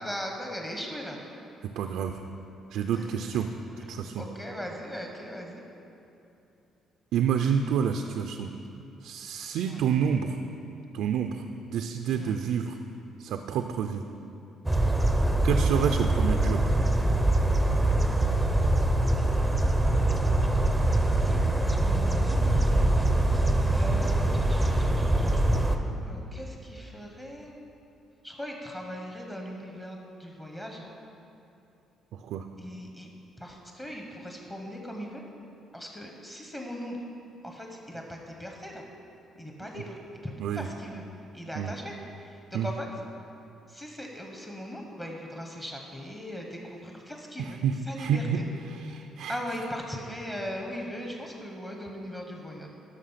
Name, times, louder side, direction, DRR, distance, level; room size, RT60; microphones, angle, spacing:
voice 1, 0.0-1.2 2.9-3.1 4.2-5.6 9.7-9.8 12.2-12.4 19.9-20.7 21.2-21.4 21.8-23.0 23.7-27.6 28.2-30.9 32.6-33.1 33.4-35.2 35.7-37.0 37.4-38.8 39.4-39.9 40.2-41.0 41.3-41.9 42.6-42.9 43.7-47.6 47.9-48.2 49.3-52.7, equal, 15° left, 0 dB, 1.1 m, -39 dB
voice 2, 1.6-2.2 2.7-3.5 3.8-4.3 7.1-8.5 9.0-10.4 10.9-12.8 13.2-14.0 15.4-16.6 32.1-32.5 39.7-39.8 40.4-40.7 41.5-41.7 42.5-42.7 47.4-48.4 48.7-49.6, right 7 dB, 80° right, 5 dB, 0.4 m, -29 dB
sound 1, 14.7-25.8, right 1 dB, 5° right, 0.6 m, -23 dB
11.5 x 6.2 x 5.7 m, 2.8 s
cardioid pair, 120°, 0 cm